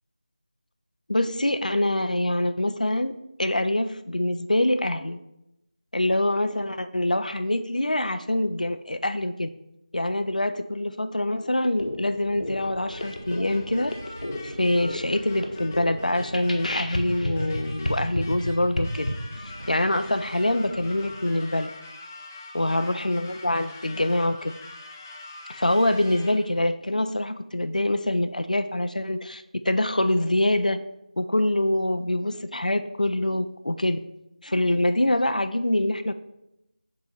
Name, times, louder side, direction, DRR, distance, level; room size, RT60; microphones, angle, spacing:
voice 1, 1.1-5.2 5.9-9.5 9.9-13.9 14.4-19.1 19.7-21.7 22.5-24.5 25.5-30.8 31.2-34.0 34.4-36.1, left 1 dB, 90° left, 10 dB, 0.4 m, -25 dB
sound 1, 11.6-19.1, left 1 dB, 70° left, 0.9 m, -32 dB
sound 2, 12.2-21.2, right 1 dB, 85° right, 0.6 m, -45 dB
sound 3, 12.9-26.6, left 2 dB, 15° left, 0.4 m, -44 dB
7.4 x 2.6 x 5.6 m, 0.88 s
figure-of-eight pair, 165°, 4 cm